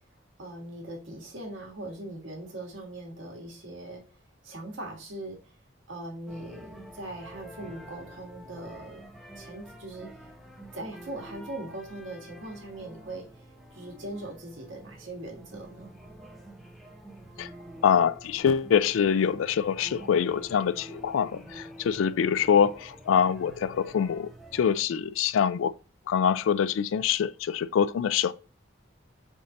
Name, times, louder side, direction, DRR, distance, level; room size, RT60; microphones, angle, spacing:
voice 1, 0.4-5.6 5.9-9.0 9.3-10.1 10.7-13.4 13.7-15.9, right 1 dB, 75° right, 1.6 m, -40 dB
sound 1, 6.3-24.8, right 1 dB, ahead, 0.7 m, -48 dB
voice 2, 17.8-25.7 26.1-28.3, left 7 dB, 90° left, 0.3 m, -25 dB
4.0 x 3.6 x 3.7 m
head